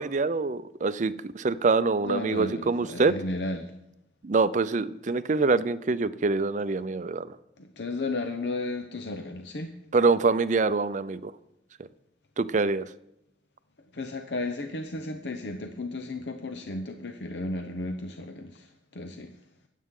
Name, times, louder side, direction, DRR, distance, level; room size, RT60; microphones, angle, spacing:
voice 1, 0.0-3.2 4.2-7.3 9.9-11.3 12.4-12.8, right 4 dB, 45° right, 14 dB, 0.5 m, -25 dB
voice 2, 2.0-3.7 7.6-9.7 13.9-19.3, left 2 dB, 70° left, 5 dB, 0.8 m, -34 dB
24.5 x 8.4 x 3.8 m, 0.84 s
head